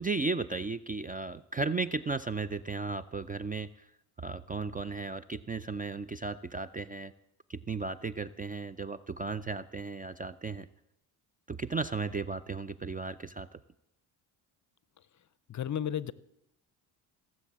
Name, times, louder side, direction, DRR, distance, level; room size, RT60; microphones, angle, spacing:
voice 1, 0.0-3.9 4.2-7.1 7.5-10.7 11.5-13.6, right 4 dB, 20° right, 15 dB, 0.4 m, -35 dB
voice 2, 15.5-16.1, left 9 dB, 40° left, 18 dB, 0.6 m, -32 dB
16.5 x 7.6 x 7.4 m, 0.83 s
supercardioid pair, 80°, 47 cm